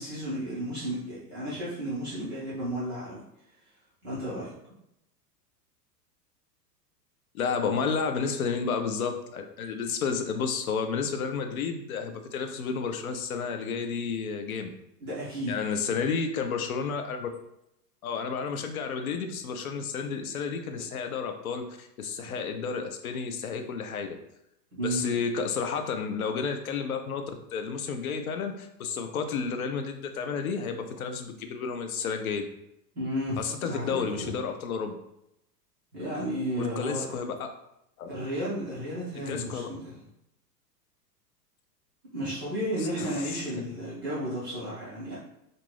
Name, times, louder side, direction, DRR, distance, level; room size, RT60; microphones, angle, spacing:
voice 1, 0.0-3.2 4.0-4.5 15.0-15.5 24.7-25.0 32.9-34.3 35.9-37.2 38.1-39.9 42.1-45.2, equal, 15° right, -10 dB, 0.3 m, -33 dB
voice 2, 7.3-14.7 15.5-17.3 18.0-24.2 24.8-27.2 27.5-32.5 33.4-35.0 36.6-37.5 38.0-38.1 39.3-39.7 42.8-43.4, left 5 dB, 60° left, 6 dB, 0.5 m, -31 dB
2.6 x 2.5 x 3.2 m, 0.82 s
figure-of-eight pair, 95°, 50 cm